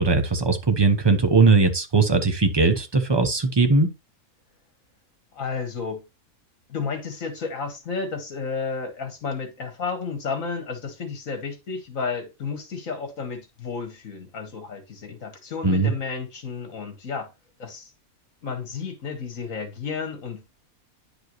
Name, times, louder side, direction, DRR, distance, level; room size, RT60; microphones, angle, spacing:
voice 1, 0.0-3.9 15.6-15.9, right 3 dB, 20° right, 0.8 m, -19 dB
voice 2, 5.3-6.0 6.7-17.3 17.6-17.9 18.4-20.4, left 5 dB, 65° left, 2.0 m, -32 dB
10.0 x 4.9 x 3.1 m
omnidirectional pair, 1.5 m